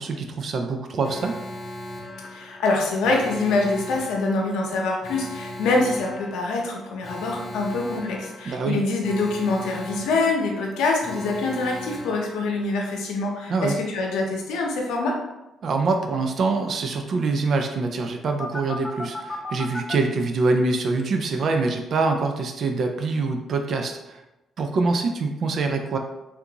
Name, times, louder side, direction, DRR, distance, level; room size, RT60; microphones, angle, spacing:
voice 1, 0.0-1.4 8.5-8.8 13.5-13.8 15.6-24.2 24.6-26.0, right 3 dB, 55° right, 5 dB, 0.3 m, -24 dB
Alarm, 1.0-12.9 18.4-20.0, left 1 dB, 30° left, 0.6 m, -37 dB
voice 2, 2.3-15.1, left 3 dB, 90° left, 0 dB, 0.7 m, -25 dB
3.4 x 2.5 x 2.9 m, 0.97 s
cardioid pair, 90°, 0 cm